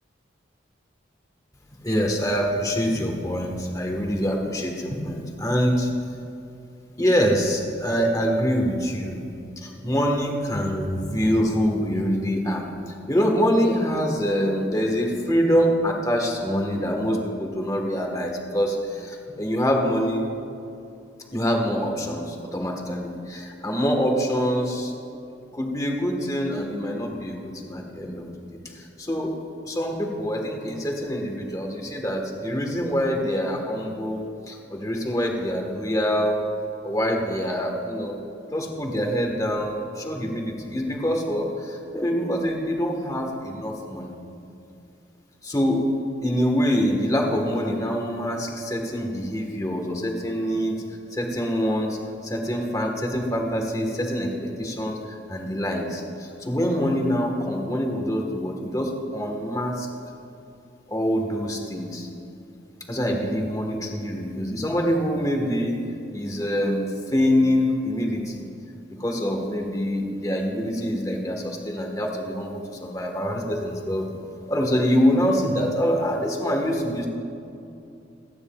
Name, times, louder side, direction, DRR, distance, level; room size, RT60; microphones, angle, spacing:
voice 1, 1.8-5.9 7.0-9.2 9.6-12.7 13.1-20.2 21.3-24.9 25.5-28.5 28.7-29.4 29.6-36.4 36.8-38.2 38.5-44.1 45.4-45.8 46.2-50.8 51.1-52.0 52.2-59.9 60.9-62.1 62.9-65.8 66.1-68.4 69.0-74.1 74.5-77.1, equal, 20° left, 1 dB, 1.4 m, -25 dB
28.5 x 9.7 x 2.4 m, 2.7 s
head